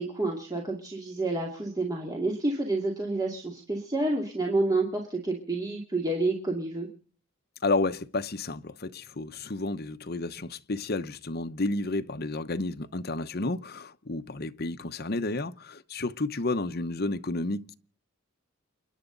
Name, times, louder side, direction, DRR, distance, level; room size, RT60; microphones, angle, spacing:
voice 1, 0.0-6.9, right 2 dB, 15° right, 2.4 m, -29 dB
voice 2, 7.6-17.7, left 2 dB, 45° left, 0.9 m, -31 dB
29.0 x 10.0 x 3.9 m
head